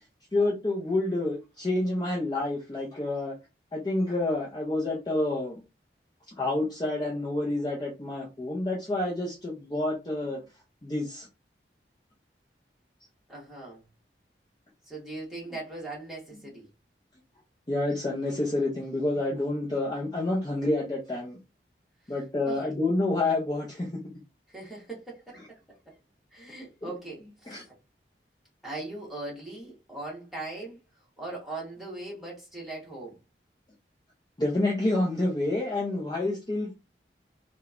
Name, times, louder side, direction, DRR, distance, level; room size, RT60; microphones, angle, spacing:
voice 1, 0.3-3.3 3.7-5.6 6.4-10.4 10.8-11.3 17.7-21.4 22.1-23.9 26.8-26.9 27.5-27.6 34.4-36.8, left 2 dB, 25° left, 0.5 m, -28 dB
voice 2, 13.3-13.8 14.8-16.7 22.0-22.1 22.4-22.7 24.5-26.0 26.3-27.7 28.6-33.2, right 2 dB, ahead, 1.0 m, -40 dB
3.0 x 2.1 x 2.4 m
head